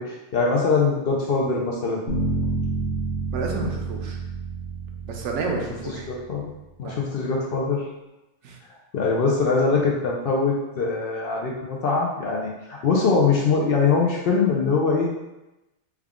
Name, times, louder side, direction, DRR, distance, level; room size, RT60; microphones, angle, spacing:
voice 1, 0.0-2.0 6.1-6.5 6.8-7.8 8.9-15.1, left 4 dB, 60° left, -2 dB, 0.7 m, -22 dB
sound 1, 2.1-6.2, right 3 dB, 35° left, 1.0 m, -29 dB
voice 2, 3.3-4.2 5.1-6.1 6.8-7.0 8.4-8.6, right 3 dB, 80° right, 1 dB, 0.9 m, -30 dB
3.5 x 2.2 x 3.5 m, 0.98 s
omnidirectional pair, 1.2 m